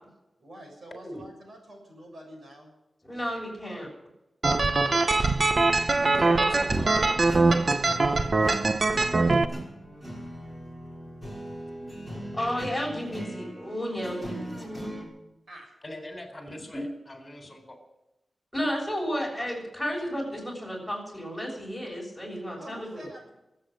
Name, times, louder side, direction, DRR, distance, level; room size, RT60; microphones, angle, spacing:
voice 1, 0.4-2.7 4.6-5.2 15.5-15.7 22.5-23.3, right 1 dB, 55° right, 1 dB, 7.0 m, -47 dB
voice 2, 3.0-3.9 6.1-6.9 12.3-14.9 16.7-16.8 18.5-23.1, equal, ahead, -2 dB, 6.9 m, -33 dB
sound 1, 4.4-9.5, right 3 dB, 35° right, 0.8 m, -22 dB
sound 2, 5.5-15.0, equal, 20° right, 5.5 m, -39 dB
voice 3, 6.2-7.8 8.0-8.6 9.1-9.2 15.8-17.8, left 1 dB, 20° left, 4 dB, 4.1 m, -43 dB
24.0 x 8.8 x 6.4 m, 0.94 s
wide cardioid pair, 155°, 0 cm